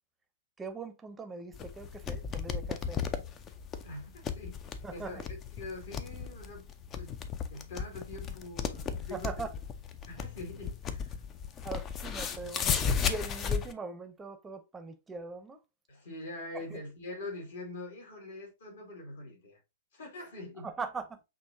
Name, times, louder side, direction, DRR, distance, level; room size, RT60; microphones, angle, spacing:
voice 1, 0.6-3.1 4.8-5.2 9.1-9.5 11.6-12.7 13.0-15.6 16.5-16.8 20.6-21.2, right 3 dB, 10° right, 0.7 m, -41 dB
sound 1, 1.5-13.7, left 6 dB, 25° left, 0.5 m, -35 dB
voice 2, 3.8-6.7 6.9-7.2 7.5-9.5 10.1-11.2 15.9-19.6 19.9-20.7, left 2 dB, 60° left, 2.3 m, -44 dB
6.3 x 2.9 x 2.7 m
figure-of-eight pair, 110°, 0 cm